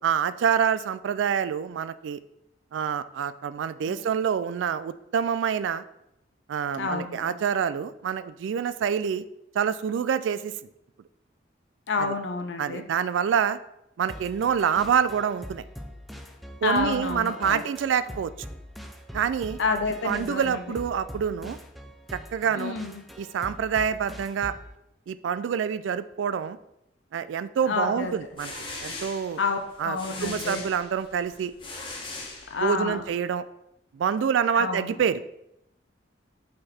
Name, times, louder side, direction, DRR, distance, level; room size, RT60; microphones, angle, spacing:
voice 1, 0.0-2.2 2.7-5.8 6.5-9.2 9.5-10.5 12.0-12.1 12.6-13.6 14.0-15.6 16.6-18.3 19.1-19.6 20.0-21.6 22.1-22.8 23.2-24.6 25.1-26.6 27.1-28.5 28.8-29.4 29.8-31.5 32.6-33.4 33.9-35.2, right 7 dB, 80° right, 15 dB, 0.3 m, -26 dB
voice 2, 6.7-7.4 11.9-12.8 16.6-17.6 19.6-20.6 22.5-23.0 27.7-28.1 29.4-30.6 32.5-33.0 34.5-35.0, left 4 dB, 75° left, 6 dB, 0.6 m, -29 dB
sound 1, 14.1-24.7, equal, ahead, 0.5 m, -43 dB
sound 2, 28.1-33.0, left 2 dB, 25° left, 1.3 m, -40 dB
5.9 x 5.2 x 4.2 m, 0.83 s
head